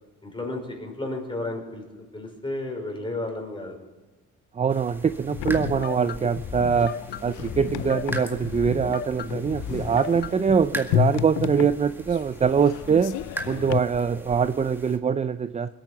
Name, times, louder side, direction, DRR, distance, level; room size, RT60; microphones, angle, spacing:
voice 1, 0.2-3.8 13.4-13.7, left 2 dB, 15° left, 1 dB, 5.2 m, -33 dB
voice 2, 4.6-6.9 7.2-13.2 13.5-15.7, right 6 dB, 25° right, 12 dB, 0.4 m, -23 dB
sound 1, 4.7-15.0, right 1 dB, 5° right, 1.9 m, -41 dB
sound 2, 5.3-13.8, left 14 dB, 80° left, 0.5 m, -32 dB
sound 3, 5.4-10.6, left 8 dB, 35° left, 0.5 m, -35 dB
20.5 x 9.0 x 6.9 m, 1.3 s
cardioid pair, 90°, 30 cm